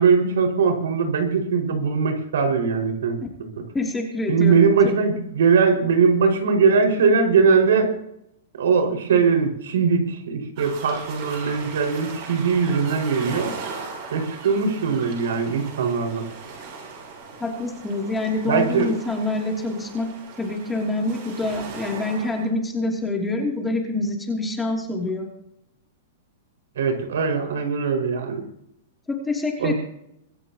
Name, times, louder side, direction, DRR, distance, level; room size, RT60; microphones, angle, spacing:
voice 1, 0.0-3.2 3.6-3.7 4.3-7.9 8.6-13.5 14.1-16.3 18.5-18.9 26.8-28.4 29.6-29.7, right 5 dB, 90° right, 3 dB, 5.4 m, -20 dB
voice 2, 3.7-4.9 17.4-25.3 29.1-29.7, left 2 dB, 10° left, 0 dB, 2.9 m, -26 dB
sound 1, 10.6-22.5, right 4 dB, 40° right, 7.6 m, -38 dB
25.0 x 13.5 x 3.0 m, 0.77 s
supercardioid pair, 160°, 0 cm